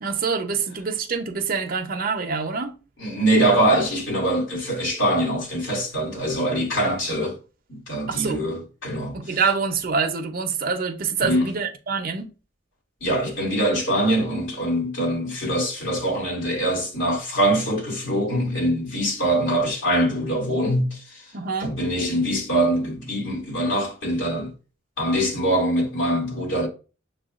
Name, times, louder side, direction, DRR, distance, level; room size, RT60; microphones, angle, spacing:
voice 1, 0.0-2.8 8.1-8.5 9.1-12.3 21.3-21.7, right 5 dB, 50° right, 0.6 m, -26 dB
voice 2, 3.0-7.4 7.7-9.4 11.2-11.5 13.0-21.3 21.6-24.5 25.0-26.7, right 1 dB, 80° left, 2.0 m, -23 dB
6.6 x 2.3 x 2.4 m
head